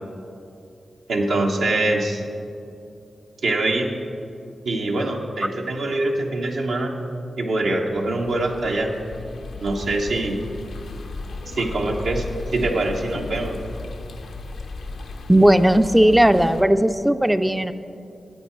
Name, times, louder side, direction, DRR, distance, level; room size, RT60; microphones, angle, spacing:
voice 1, 1.1-2.2 3.4-3.9 4.6-6.9 7.4-8.9 9.6-10.4 11.6-12.2 12.5-13.6, right 2 dB, 85° right, 0 dB, 0.9 m, -23 dB
sound 1, 7.9-16.6, left 3 dB, 85° left, 0.6 m, -35 dB
voice 2, 15.3-17.7, right 1 dB, 10° right, 11 dB, 0.3 m, -16 dB
9.3 x 8.2 x 4.4 m, 2.6 s
cardioid pair, 40°, 0 cm